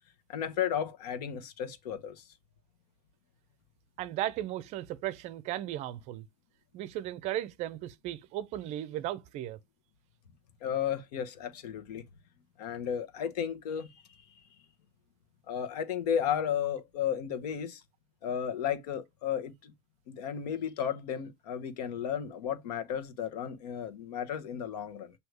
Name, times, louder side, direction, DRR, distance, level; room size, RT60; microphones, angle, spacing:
voice 1, 0.3-2.2 10.6-12.1 12.6-14.0 15.5-17.8 18.2-19.7 20.1-25.1, left 8 dB, 80° left, 1.2 m, -33 dB
voice 2, 4.0-6.2 6.7-9.6, right 13 dB, 35° right, 0.5 m, -36 dB
8.0 x 2.8 x 4.7 m
supercardioid pair, 165°, 20 cm